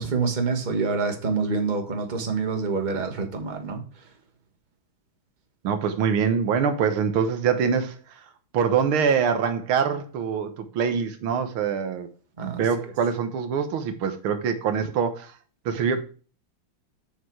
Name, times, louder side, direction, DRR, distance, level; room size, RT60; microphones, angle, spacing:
voice 1, 0.0-4.0 12.4-12.6, right 4 dB, 25° right, 3 dB, 1.6 m, -27 dB
voice 2, 5.6-8.3 8.5-12.1 12.4-15.3 15.7-16.0, right 6 dB, 90° right, 8 dB, 2.0 m, -24 dB
8.3 x 6.9 x 4.7 m, 0.39 s
omnidirectional pair, 2.2 m